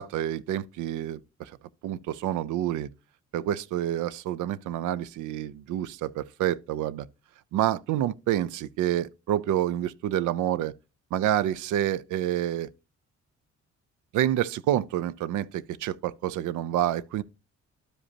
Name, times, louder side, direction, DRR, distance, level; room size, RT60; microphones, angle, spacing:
voice 1, 0.0-1.5 1.8-2.9 3.3-7.1 7.5-10.7 11.1-12.7 14.1-17.2, right 12 dB, 80° right, 0.5 m, -28 dB
12.5 x 5.0 x 2.8 m
cardioid pair, 90°, 30 cm